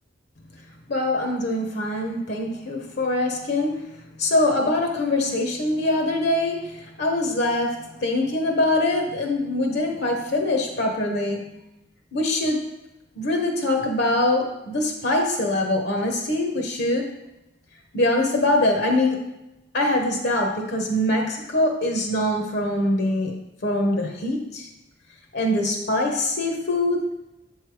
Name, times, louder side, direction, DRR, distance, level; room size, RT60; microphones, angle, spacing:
voice 1, 0.9-3.8 4.2-6.6 7.0-11.4 12.1-12.6 13.2-17.1 17.9-19.3 19.7-23.3 23.6-24.7 25.3-27.0, left 1 dB, 60° left, 2 dB, 0.9 m, -23 dB
7.3 x 3.3 x 4.7 m, 0.90 s
head